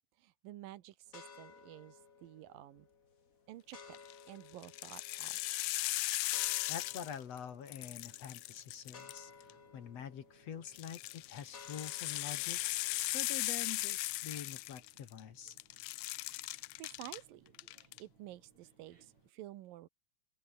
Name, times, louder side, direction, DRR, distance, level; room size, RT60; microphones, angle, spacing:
voice 1, 0.2-2.9 3.5-4.0 4.3-5.4 16.5-17.5 17.7-19.9, right 14 dB, 85° right, 2.8 m, -51 dB
sound 1, 1.1-13.9, left 5 dB, 35° left, 1.6 m, -58 dB
sound 2, 3.8-4.1 4.6-7.4 7.7-9.5 10.7-15.2 15.5-17.2 17.5-18.0, left 19 dB, 80° left, 1.7 m, -38 dB
voice 2, 6.7-12.6 13.1-15.6, left 8 dB, 55° left, 2.7 m, -46 dB
sound 3, 6.8-19.3, right 5 dB, 55° right, 5.7 m, -69 dB
open air
omnidirectional pair, 3.9 m